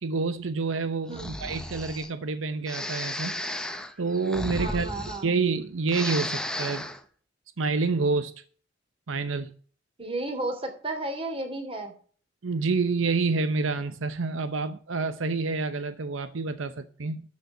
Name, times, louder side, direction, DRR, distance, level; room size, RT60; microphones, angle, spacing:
voice 1, 0.0-3.4 4.0-4.9 5.2-6.9 7.6-8.3 9.1-9.5 12.4-17.2, right 4 dB, 85° right, 0.8 m, -28 dB
Breathing, 1.1-2.1 2.7-5.6 5.8-7.0, left 1 dB, 5° left, 1.0 m, -34 dB
voice 2, 4.6-5.3 10.0-11.9, right 2 dB, 30° right, 3.1 m, -33 dB
13.0 x 5.3 x 7.8 m
head